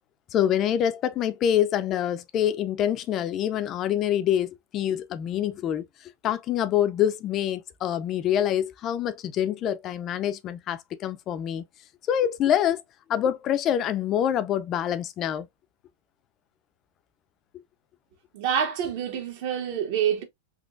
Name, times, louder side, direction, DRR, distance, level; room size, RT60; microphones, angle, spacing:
voice 1, 0.3-11.6 12.1-12.8 13.1-15.5, left 10 dB, 30° left, 0.4 m, -26 dB
voice 2, 18.3-20.2, right 8 dB, 55° right, 1.2 m, -27 dB
3.5 x 3.1 x 2.5 m
supercardioid pair, 135°, 0 cm